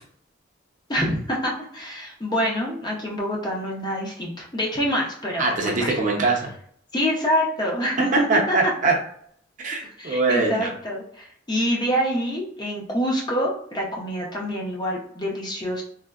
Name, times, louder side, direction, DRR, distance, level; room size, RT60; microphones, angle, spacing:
voice 1, 0.9-5.9 6.9-8.6 10.0-15.8, equal, 20° left, -2 dB, 0.5 m, -26 dB
voice 2, 5.4-6.5 8.3-9.0 9.6-10.7, right 3 dB, 40° right, 0 dB, 0.5 m, -22 dB
3.4 x 2.1 x 2.3 m, 0.64 s
head